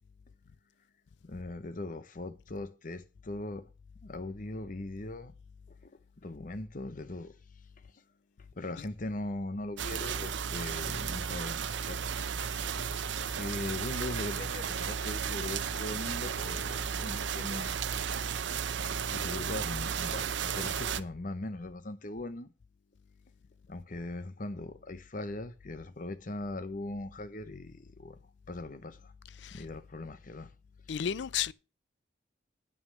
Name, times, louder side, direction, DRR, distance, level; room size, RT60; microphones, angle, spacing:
voice 1, 1.2-3.6 4.0-5.3 5.8-5.9 6.2-7.3 8.6-12.0 13.4-17.8 19.0-22.5 23.7-28.2 28.5-29.1 29.5-30.5, left 2 dB, 45° left, 0.8 m, -40 dB
sound 1, 9.8-21.0, right 7 dB, 70° right, 0.6 m, -34 dB
voice 2, 30.9-31.5, left 9 dB, 65° left, 0.4 m, -32 dB
9.6 x 5.8 x 6.5 m
head